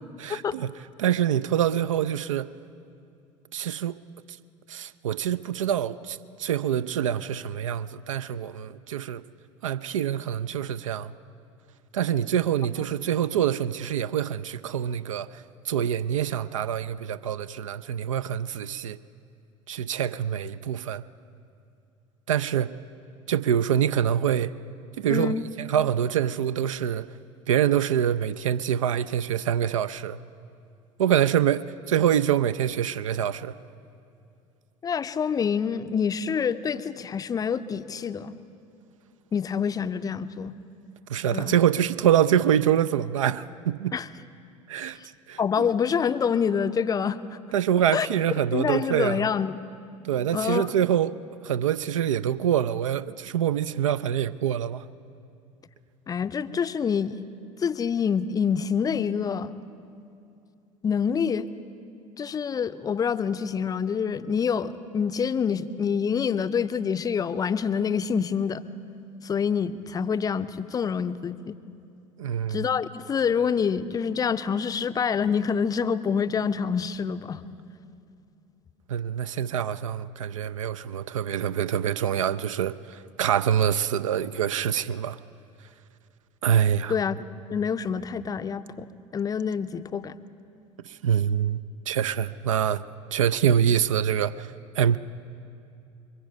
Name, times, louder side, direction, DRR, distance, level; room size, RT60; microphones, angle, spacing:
voice 1, 0.2-0.7 1.0-2.5 3.5-3.9 4.7-9.2 9.6-11.1 11.9-15.3 15.7-19.0 19.7-21.0 22.3-22.7 23.3-24.5 25.0-27.1 27.5-30.2 31.0-33.5 41.1-43.9 44.7-45.0 45.3-45.4 47.5-49.2 50.0-51.1 51.4-54.8 72.2-72.7 78.9-85.2 86.4-86.9 90.8-91.6 91.9-92.8 93.1-95.0, right 9 dB, 70° right, 14 dB, 0.4 m, -25 dB
voice 2, 25.1-25.4 34.8-38.3 39.3-40.5 41.3-41.5 43.9-44.1 45.0-45.1 45.4-47.4 47.9-48.1 48.5-49.6 50.3-50.7 56.1-57.2 57.6-59.5 60.8-61.5 62.2-68.6 69.2-71.6 72.5-77.4 86.9-87.2 87.5-90.2, left 6 dB, 20° left, 12 dB, 0.5 m, -26 dB
22.5 x 10.5 x 5.3 m, 2.6 s
figure-of-eight pair, 70°, 17 cm